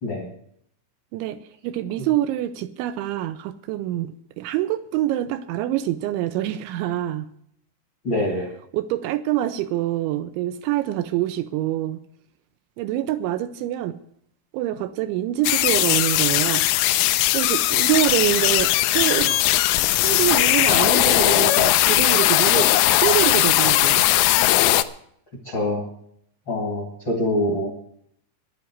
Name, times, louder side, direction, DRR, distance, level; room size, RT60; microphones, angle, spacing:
voice 1, 1.1-7.3 8.7-12.0 12.8-14.0 14.5-16.7 17.3-19.7 20.0-24.0, right 13 dB, 80° right, 2.8 m, -25 dB
voice 2, 8.0-8.5 25.4-25.8 26.5-27.8, left 1 dB, 45° left, 1.5 m, -25 dB
sound 1, 15.4-24.8, left 16 dB, 80° left, 3.2 m, -19 dB
11.0 x 10.5 x 8.0 m
omnidirectional pair, 5.8 m